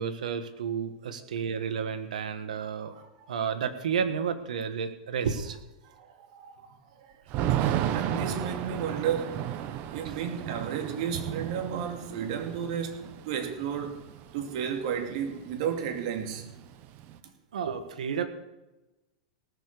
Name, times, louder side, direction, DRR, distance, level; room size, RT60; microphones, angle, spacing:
voice 1, 0.0-2.9 3.3-5.6 10.0-10.1 17.5-18.2, right 7 dB, 90° right, 1.8 m, -31 dB
voice 2, 2.5-3.2 5.8-7.1 7.5-9.5 9.9-14.1 14.3-16.5, right 8 dB, 60° right, 2.6 m, -33 dB
Thunder / Rain, 7.3-15.2 15.5-15.6 15.8-17.2, right 11 dB, 45° right, 1.1 m, -34 dB
18.5 x 7.3 x 6.8 m
hypercardioid pair, 125°, 4 cm